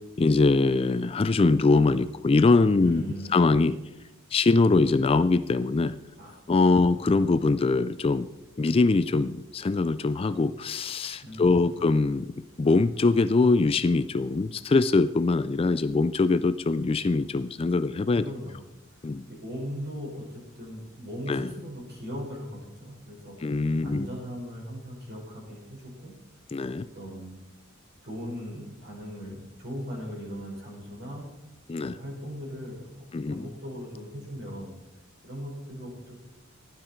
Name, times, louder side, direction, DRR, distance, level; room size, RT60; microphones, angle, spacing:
voice 1, 0.2-3.0 3.3-3.8 4.3-6.0 6.5-8.3 8.6-12.3 12.6-18.3 19.0-19.3 21.3-21.5 23.4-24.1 26.5-26.9 31.7-32.0 33.1-33.5, left 3 dB, 25° left, 13 dB, 0.3 m, -23 dB
voice 2, 2.8-3.4 6.2-6.3 6.9-7.0 7.3-7.4 11.2-11.7 18.2-18.6 19.3-26.1 26.7-27.4 28.0-31.3 31.8-33.0 33.3-34.8 35.2-36.3, equal, 50° right, -2 dB, 5.5 m, -39 dB
15.0 x 11.5 x 4.5 m, 0.95 s
head